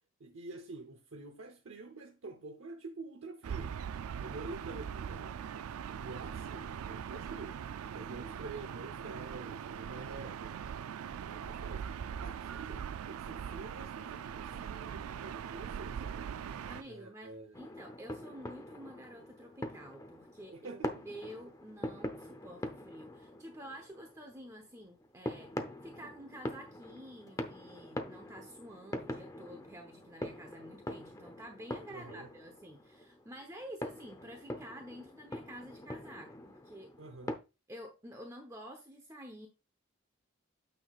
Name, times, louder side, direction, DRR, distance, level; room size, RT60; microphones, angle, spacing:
voice 1, 0.2-3.8 4.2-5.4 6.0-7.6 7.9-10.6 11.2-11.9 12.2-16.4 16.8-17.6 20.5-21.0 31.9-32.3 37.0-37.4, right 3 dB, 70° right, 0.9 m, -47 dB
Gull seagull / Ocean, 3.4-16.8, right 8 dB, 90° right, 0.3 m, -41 dB
voice 2, 16.6-20.8 21.1-25.5 25.8-36.9 37.7-39.5, equal, 15° right, 0.9 m, -50 dB
sound 1, 17.5-37.4, left 1 dB, 15° left, 0.7 m, -44 dB
9.0 x 6.3 x 2.4 m
head